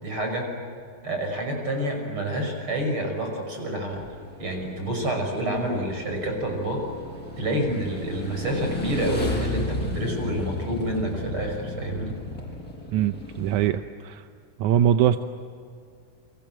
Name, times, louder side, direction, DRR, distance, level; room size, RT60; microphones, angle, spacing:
voice 1, 0.0-0.5 1.0-4.0 4.4-6.8 7.4-12.1, right 1 dB, 35° right, 3 dB, 6.7 m, -28 dB
Motorcycle / Engine, 3.9-13.7, left 1 dB, 25° left, 6.7 m, -34 dB
voice 2, 12.9-14.3 14.6-15.2, right 10 dB, 75° right, 8 dB, 1.9 m, -22 dB
30.0 x 24.5 x 7.7 m, 2.3 s
omnidirectional pair, 3.9 m